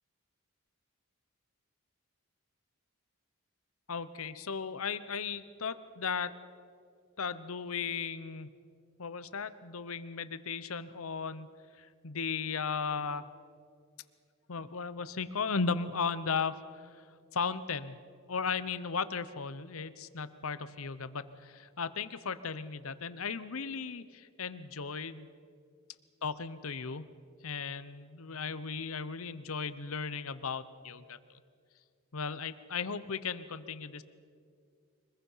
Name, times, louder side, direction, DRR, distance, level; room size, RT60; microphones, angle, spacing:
voice 1, 3.9-6.4 7.2-8.5 9.0-11.5 11.8-13.3 14.5-17.0 17.3-18.0 18.3-25.3 26.2-27.1 27.4-31.4 32.1-34.0, left 5 dB, 75° left, 14 dB, 0.9 m, -36 dB
24.5 x 20.5 x 5.7 m, 2.2 s
head